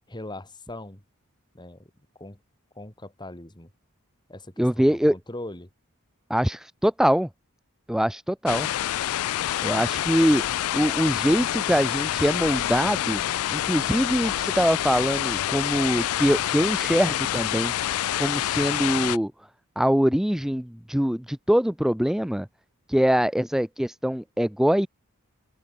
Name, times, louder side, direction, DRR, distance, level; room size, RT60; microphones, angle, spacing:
voice 1, 0.1-1.0 1.5-1.9 2.2-2.4 2.8-3.7 4.3-5.7, left 1 dB, 20° left, 2.4 m, -40 dB
voice 2, 4.6-5.2 6.3-7.3 7.9-8.7 9.6-10.4 10.7-13.2 13.5-17.9 18.2-19.3 19.8-22.5 22.9-24.9, equal, ahead, 0.4 m, -23 dB
sound 1, 8.5-19.2, left 12 dB, 75° left, 0.3 m, -27 dB
open air
head